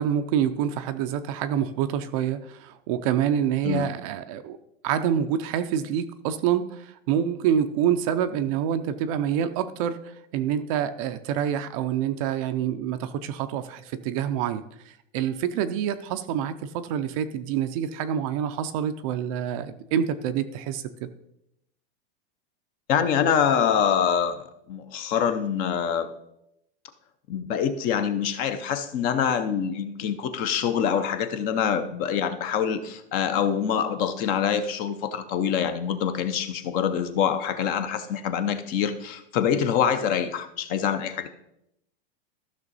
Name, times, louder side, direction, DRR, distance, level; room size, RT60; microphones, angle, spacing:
voice 1, 0.0-4.6 4.8-21.1, right 9 dB, 35° right, 10 dB, 0.5 m, -27 dB
voice 2, 22.9-26.1 27.3-41.3, left 8 dB, 30° left, 10 dB, 0.6 m, -25 dB
14.0 x 6.2 x 4.0 m, 0.80 s
supercardioid pair, 165°, 30 cm